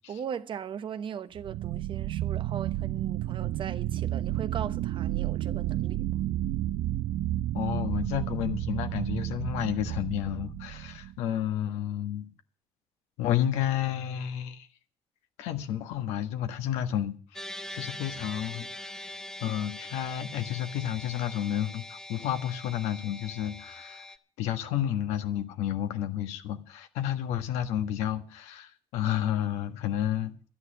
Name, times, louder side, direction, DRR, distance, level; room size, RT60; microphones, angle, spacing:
voice 1, 0.0-6.2, right 8 dB, 50° right, 1.0 m, -39 dB
sound 1, 1.3-11.2, right 14 dB, 80° right, 0.5 m, -31 dB
voice 2, 7.5-12.3 13.2-14.7 15.4-17.4 17.7-24.1 24.4-30.5, left 11 dB, 90° left, 1.5 m, -31 dB
sound 2, 17.3-24.2, left 1 dB, 5° left, 1.2 m, -42 dB
11.5 x 9.6 x 7.9 m
cardioid pair, 85°, 11 cm